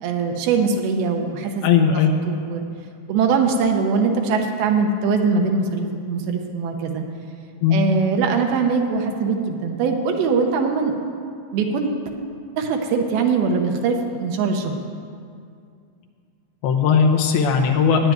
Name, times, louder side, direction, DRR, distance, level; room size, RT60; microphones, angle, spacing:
voice 1, 0.0-1.8 2.3-2.6 3.1-7.0 7.7-10.9 11.5-12.0 12.6-14.7, right 5 dB, 80° right, 3 dB, 2.2 m, -22 dB
voice 2, 1.6-2.1 7.6-7.8 16.6-18.1, left 6 dB, 80° left, 1 dB, 2.2 m, -17 dB
9.6 x 9.0 x 9.2 m, 2.3 s
omnidirectional pair, 5.5 m